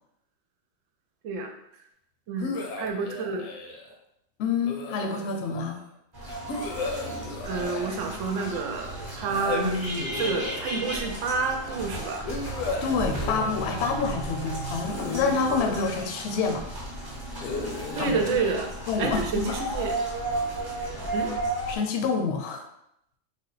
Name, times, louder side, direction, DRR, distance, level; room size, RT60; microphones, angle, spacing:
voice 1, 2.3-3.4 7.4-9.8 10.1-12.3 18.0-18.7 19.0-20.0 21.1-21.3, right 4 dB, 75° right, 4 dB, 0.9 m, -29 dB
sound 1, 2.4-3.9 4.6-5.6 6.5-8.7 9.3-11.1 12.3-14.0 14.8-16.5 17.4-19.4, left 3 dB, 85° left, 1.0 m, -35 dB
voice 2, 4.4-5.8 12.8-16.6 18.0-18.2 18.9-19.5 21.7-22.6, left 5 dB, 65° left, 4 dB, 0.7 m, -27 dB
sound 2, 6.1-21.8, right 1 dB, 25° right, 0.6 m, -34 dB
3.4 x 2.2 x 3.9 m, 0.78 s
omnidirectional pair, 1.4 m